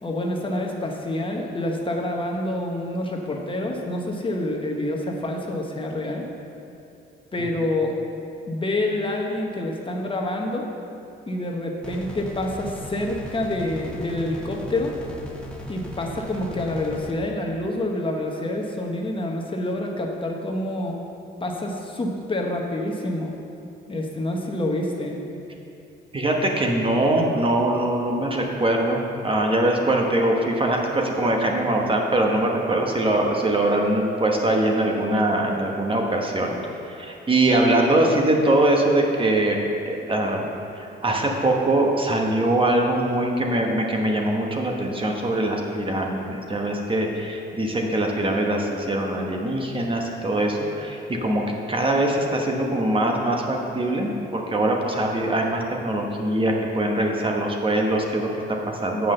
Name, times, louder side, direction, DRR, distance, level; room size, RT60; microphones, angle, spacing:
voice 1, 0.0-6.2 7.3-7.9 8.5-10.7 11.3-15.0 15.7-21.0 21.4-23.3 23.9-25.2, left 1 dB, 25° left, 1 dB, 1.0 m, -27 dB
sound 1, 11.8-17.1, equal, 5° left, 1.2 m, -37 dB
voice 2, 26.1-36.6 36.8-40.5 40.8-59.1, right 1 dB, 25° right, 1 dB, 1.1 m, -22 dB
7.5 x 5.7 x 6.6 m, 2.7 s
cardioid pair, 90°, 20 cm